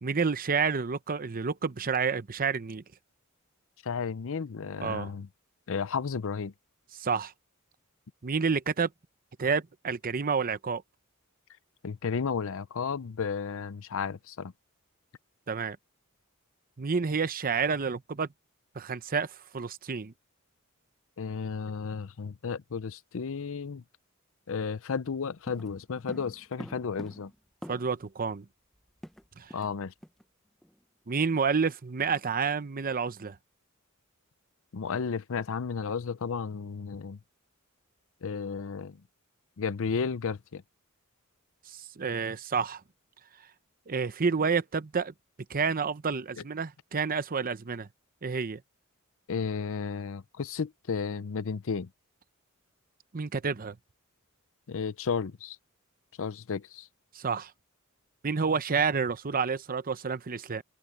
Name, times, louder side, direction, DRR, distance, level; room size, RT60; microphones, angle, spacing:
voice 1, 0.0-2.8 4.8-5.1 7.0-7.3 8.2-8.9 9.4-10.8 15.5-15.8 16.8-18.3 18.8-20.1 27.7-28.4 29.4-29.5 31.1-33.4 41.7-42.8 43.9-45.1 45.5-47.9 48.2-48.6 53.1-53.8 57.1-57.5 58.2-60.6, right 5 dB, 40° right, 0.7 m, -29 dB
voice 2, 3.8-5.3 5.7-6.5 11.8-14.5 21.2-23.8 24.5-27.3 29.5-29.9 34.7-37.2 38.2-39.0 39.6-40.6 46.4-46.5 49.3-51.9 54.7-55.6 56.2-56.9, left 5 dB, 65° left, 0.6 m, -33 dB
sound 1, 25.5-28.1 28.4-28.5 28.7-29.8 30.0-30.2 30.6-30.8, equal, ahead, 0.7 m, -46 dB
open air
head